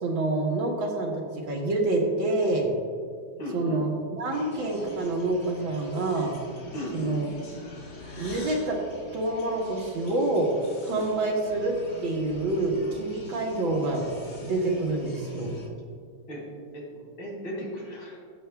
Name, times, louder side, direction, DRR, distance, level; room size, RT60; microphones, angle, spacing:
voice 1, 0.0-2.7 3.5-3.9 4.2-6.3 6.9-7.3 8.2-8.8 9.1-10.5 10.8-11.7 12.0-14.0 14.4-15.6, right 2 dB, 65° right, 0 dB, 2.1 m, -27 dB
voice 2, 3.4-3.8 6.7-7.3 10.9-11.1 16.3-16.4 16.7-18.2, equal, 65° left, -3 dB, 3.6 m, -36 dB
sound 1, 4.3-15.7, left 2 dB, 80° left, 2.6 m, -45 dB
20.5 x 7.9 x 2.3 m, 2.2 s
omnidirectional pair, 2.4 m